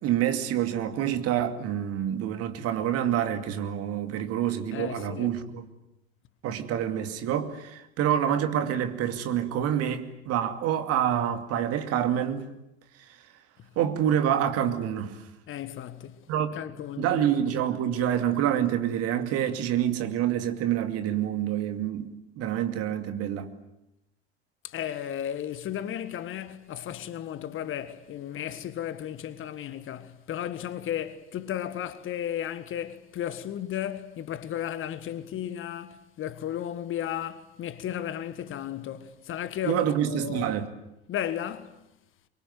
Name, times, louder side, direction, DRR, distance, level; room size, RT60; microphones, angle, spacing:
voice 1, 0.0-5.7 6.4-12.5 13.8-15.2 16.3-16.5 17.0-23.5 39.6-40.7, right 10 dB, 45° right, 2.4 m, -27 dB
voice 2, 4.7-5.3 15.5-16.3 16.5-17.4 24.6-40.5 41.1-41.8, left 10 dB, 40° left, 1.5 m, -34 dB
24.5 x 23.5 x 9.2 m
figure-of-eight pair, 70°, 32 cm